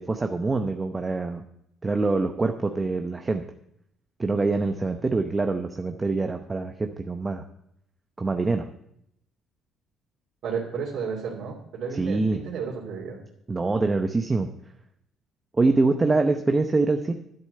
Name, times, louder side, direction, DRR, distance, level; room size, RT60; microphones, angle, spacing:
voice 1, 0.0-1.4 1.8-3.5 4.2-7.4 8.2-8.7 11.9-12.4 13.5-14.5 15.6-17.1, right 3 dB, 20° right, 5 dB, 0.8 m, -24 dB
voice 2, 10.4-13.2 16.0-16.1, right 6 dB, 65° right, -5 dB, 2.7 m, -32 dB
11.0 x 8.3 x 6.6 m, 0.77 s
cardioid pair, 100°, 0 cm